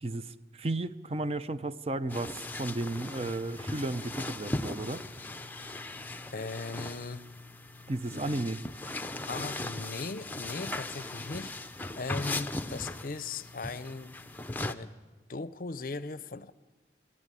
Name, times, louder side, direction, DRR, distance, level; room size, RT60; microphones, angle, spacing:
voice 1, 0.0-5.0 7.9-8.6, right 2 dB, 35° right, 12 dB, 0.6 m, -34 dB
sound 1, 2.1-14.7, left 2 dB, 10° left, 0.6 m, -38 dB
voice 2, 6.3-7.2 8.1-8.5 9.3-11.5 12.0-14.2 14.6-14.9 15.3-16.5, left 3 dB, 50° left, 15 dB, 0.6 m, -39 dB
23.0 x 14.0 x 9.8 m, 1.4 s
head